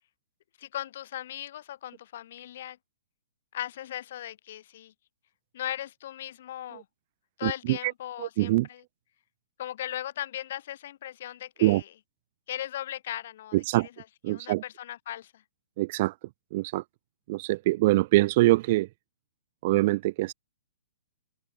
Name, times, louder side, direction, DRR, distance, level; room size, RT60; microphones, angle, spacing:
voice 1, 0.6-2.8 3.5-4.9 5.5-6.8 7.4-8.8 9.6-11.9 12.5-15.4, left 12 dB, 50° left, 6.5 m, -38 dB
voice 2, 7.4-7.9 8.2-8.7 11.6-11.8 13.5-13.9 14.2-14.6 15.8-16.1 16.5-16.8 17.3-18.9 19.6-20.3, right 18 dB, 40° right, 1.6 m, -24 dB
figure-of-eight pair, 115°, 0 cm